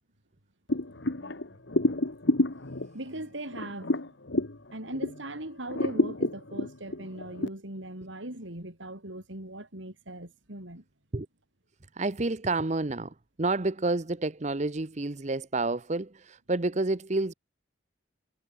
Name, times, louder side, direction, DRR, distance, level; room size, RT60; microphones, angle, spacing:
sound 1, 0.7-5.3 5.7-7.5, left 2 dB, 70° left, 1.6 m, -29 dB
voice 1, 2.9-4.1 4.7-10.8, right 1 dB, 75° right, 5.1 m, -39 dB
voice 2, 11.9-17.3, right 2 dB, 35° right, 0.8 m, -29 dB
head